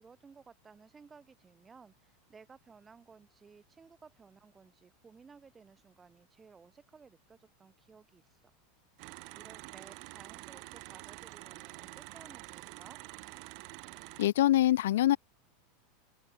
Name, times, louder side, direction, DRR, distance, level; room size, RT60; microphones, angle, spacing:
voice 1, 0.0-8.4 9.3-13.0, right 5 dB, 15° right, 6.4 m, -57 dB
sound 1, 9.0-14.3, right 37 dB, 50° right, 1.6 m, -47 dB
voice 2, 14.2-15.2, left 13 dB, 85° left, 0.6 m, -24 dB
supercardioid pair, 150°, 0 cm